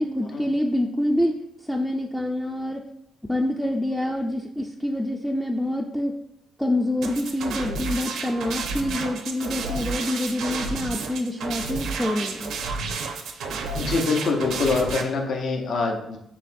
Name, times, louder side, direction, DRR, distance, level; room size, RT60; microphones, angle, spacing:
voice 1, 0.0-2.8 3.3-6.1 6.6-12.5, left 1 dB, 5° left, 1 dB, 0.4 m, -26 dB
sound 1, 7.0-15.0, right 4 dB, 75° right, 0.6 m, -31 dB
voice 2, 13.8-16.2, left 4 dB, 65° left, 2 dB, 0.8 m, -24 dB
6.8 x 2.9 x 2.6 m, 0.79 s
cardioid pair, 90°, 0 cm